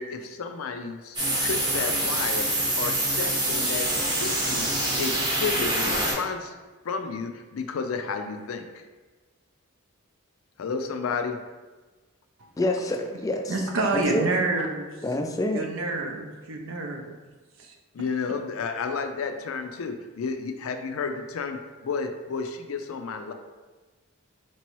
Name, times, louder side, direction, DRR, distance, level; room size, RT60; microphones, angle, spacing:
voice 1, 0.0-2.4 2.8-3.9 4.2-4.7 5.0-6.5 6.8-8.6 10.6-11.4 17.9-21.6 21.8-23.3, left 5 dB, 90° left, 7 dB, 0.4 m, -31 dB
sound 1, 1.2-6.1, right 1 dB, 20° right, 0.8 m, -25 dB
voice 2, 12.6-13.5 14.1-14.3 15.0-15.7, left 1 dB, 15° left, 3 dB, 0.3 m, -27 dB
voice 3, 13.5-14.8 15.5-17.2 17.6-17.7, right 3 dB, 70° right, 2 dB, 0.6 m, -28 dB
4.5 x 3.0 x 3.0 m, 1.3 s
head